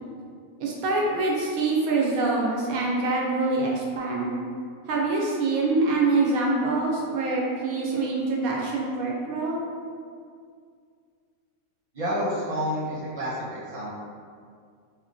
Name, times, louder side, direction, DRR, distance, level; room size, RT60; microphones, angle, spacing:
voice 1, 0.6-4.3 4.9-9.6, right 3 dB, 90° right, -3 dB, 1.1 m, -25 dB
voice 2, 11.9-13.9, equal, 30° right, -9 dB, 0.8 m, -29 dB
3.5 x 2.2 x 2.5 m, 2.2 s
omnidirectional pair, 1.4 m